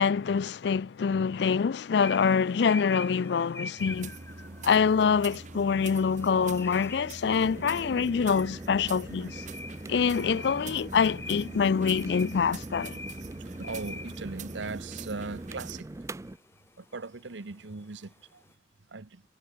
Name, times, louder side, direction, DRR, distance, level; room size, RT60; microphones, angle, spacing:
voice 1, 0.0-4.1 4.6-9.4 9.9-13.0, left 6 dB, 70° left, 0.4 m, -25 dB
sound 1, 2.0-18.5, left 3 dB, 15° left, 0.7 m, -45 dB
sound 2, 3.8-15.8, right 3 dB, 40° right, 1.1 m, -44 dB
sound 3, 7.2-16.4, right 2 dB, 15° right, 0.3 m, -43 dB
voice 2, 13.6-15.9 16.8-18.4 18.9-19.2, right 3 dB, 85° right, 1.0 m, -39 dB
head